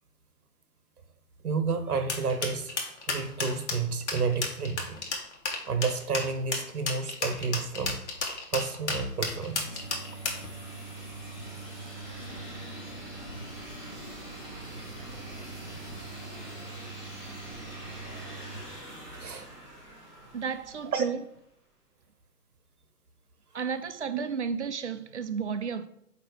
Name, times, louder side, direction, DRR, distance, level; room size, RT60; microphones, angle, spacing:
voice 1, 1.4-2.7 3.1-5.0 5.7-8.0 8.5-9.8 19.2-19.5 20.9-21.1 24.1-24.2, right 4 dB, 65° right, 1.2 m, -30 dB
sound 1, 2.1-10.5, left 3 dB, 45° left, 1.4 m, -32 dB
sound 2, 8.1-21.4, right 1 dB, 5° right, 1.5 m, -45 dB
sound 3, 9.6-18.6, right 3 dB, 25° left, 0.5 m, -44 dB
voice 2, 20.3-21.2 23.5-25.9, right 6 dB, 50° right, 0.5 m, -32 dB
8.5 x 3.0 x 4.7 m
hypercardioid pair, 155°, 48 cm